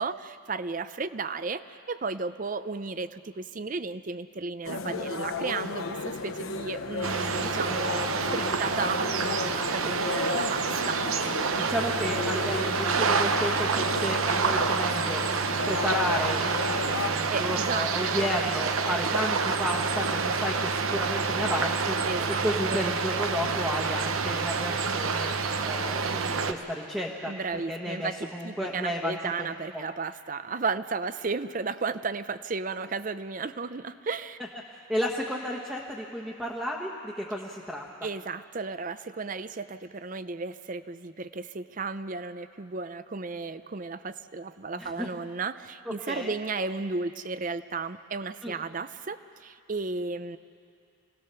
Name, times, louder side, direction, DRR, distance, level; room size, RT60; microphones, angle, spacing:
voice 1, 0.0-11.2 17.3-18.2 18.9-19.1 22.0-22.9 27.3-34.4 38.0-50.4, right 4 dB, 40° right, 13 dB, 0.5 m, -34 dB
sound 1, 4.6-17.1, left 3 dB, 85° left, 1.0 m, -34 dB
sound 2, 7.0-26.5, right 5 dB, 85° right, 0.9 m, -28 dB
voice 2, 11.6-15.2 15.7-21.9 22.3-25.3 25.6-29.8 34.9-37.9 44.8-45.1 45.8-46.3 48.4-48.6, equal, 5° right, -2 dB, 1.2 m, -32 dB
25.5 x 18.0 x 6.8 m, 2.5 s
head